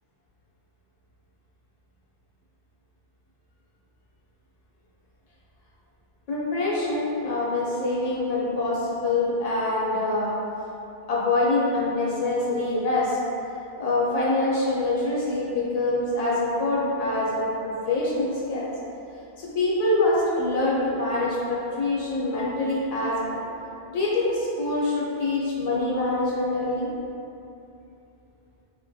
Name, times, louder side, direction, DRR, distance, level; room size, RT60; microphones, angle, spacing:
voice 1, 6.3-10.4 11.1-13.2 13.8-18.7 19.4-23.4 23.9-26.9, left 2 dB, 50° left, -6 dB, 0.5 m, -25 dB
2.9 x 2.1 x 2.6 m, 2.7 s
omnidirectional pair, 1.1 m